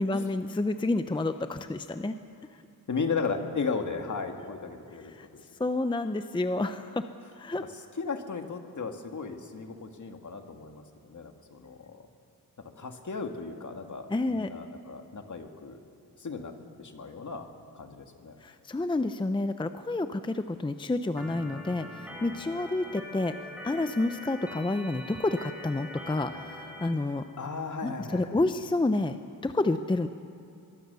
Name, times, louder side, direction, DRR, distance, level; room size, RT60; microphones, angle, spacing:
voice 1, 0.0-2.1 5.1-5.3 5.6-7.1 7.4-7.6 14.1-14.5 18.4-27.2 27.8-30.1, left 2 dB, 15° left, 9 dB, 0.6 m, -29 dB
voice 2, 2.9-5.4 7.7-12.1 12.6-15.8 16.2-17.5 17.7-18.4 27.1-28.4, left 4 dB, 55° left, 4 dB, 2.1 m, -36 dB
Organ, 21.2-26.9, left 1 dB, 5° right, 4.7 m, -43 dB
23.0 x 22.5 x 6.9 m, 2.6 s
wide cardioid pair, 120°, 35 cm